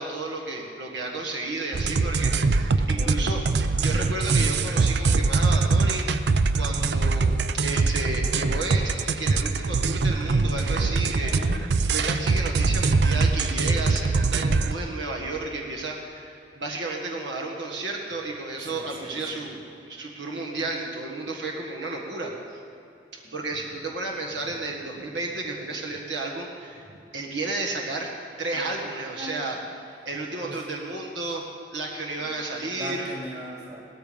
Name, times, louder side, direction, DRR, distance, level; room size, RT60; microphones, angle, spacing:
voice 1, 0.0-3.4 3.8-11.3 11.9-19.6 19.9-22.6 23.3-26.9 27.1-28.1 28.4-29.6 30.0-31.4 31.7-33.1, right 2 dB, 85° right, -1 dB, 1.7 m, -32 dB
sound 1, 1.7-14.8, right 3 dB, 65° right, 0.5 m, -23 dB
voice 2, 2.9-3.2 11.2-11.7 18.7-19.4 23.2-23.3 28.5-28.9 29.2-29.4 30.4-30.6 32.2-32.4 32.7-33.8, equal, 35° right, -2 dB, 3.0 m, -39 dB
17.5 x 14.0 x 5.2 m, 2.8 s
head